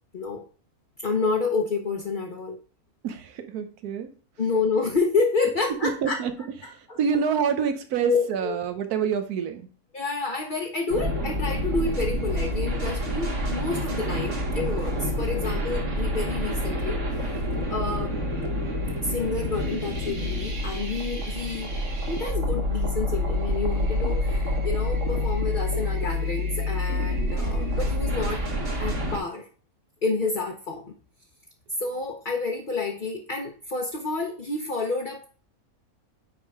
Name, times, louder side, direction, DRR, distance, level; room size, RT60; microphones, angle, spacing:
voice 1, 0.1-0.4 1.0-2.6 4.4-6.2 6.9-7.0 8.0-8.5 9.9-17.0 17.7-18.2 19.0-21.7 22.1-28.4 28.8-29.5 30.0-31.0 31.8-35.3, left 4 dB, 40° left, 1 dB, 1.0 m, -29 dB
voice 2, 3.0-4.1 5.7-6.3 6.6-9.7, right 7 dB, 90° right, 8 dB, 1.3 m, -27 dB
sound 1, 10.9-29.2, left 1 dB, 55° right, 1.8 m, -27 dB
9.7 x 3.7 x 4.7 m, 0.39 s
omnidirectional pair, 1.6 m